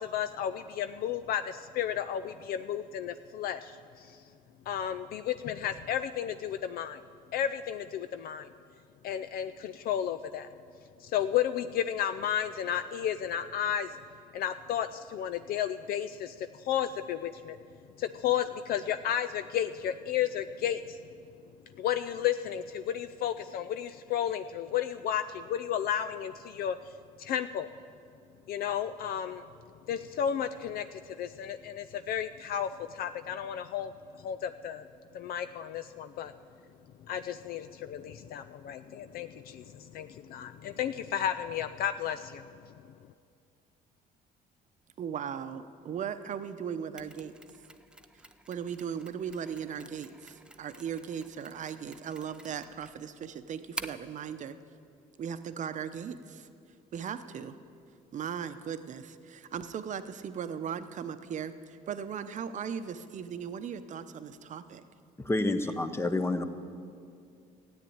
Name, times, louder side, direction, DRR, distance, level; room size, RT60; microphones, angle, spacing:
voice 1, 0.0-4.2 4.7-7.0 7.3-8.5 9.0-10.5 11.0-14.0 14.3-17.6 18.0-21.0 21.8-26.8 27.2-27.7 28.5-29.4 29.9-33.9 34.2-34.9 35.1-36.3 37.1-42.5, left 9 dB, 65° left, 11 dB, 0.4 m, -33 dB
voice 2, 45.0-47.3 48.5-54.6 55.2-56.5 56.9-57.6 58.1-64.8 65.6-65.7, right 7 dB, 45° right, 11 dB, 0.8 m, -38 dB
Mechanisms, 47.0-54.1, right 1 dB, 5° right, 0.5 m, -48 dB
voice 3, 65.2-66.4, left 2 dB, 15° left, 9 dB, 0.9 m, -29 dB
14.0 x 8.9 x 8.6 m, 2.4 s
cardioid pair, 110°, 17 cm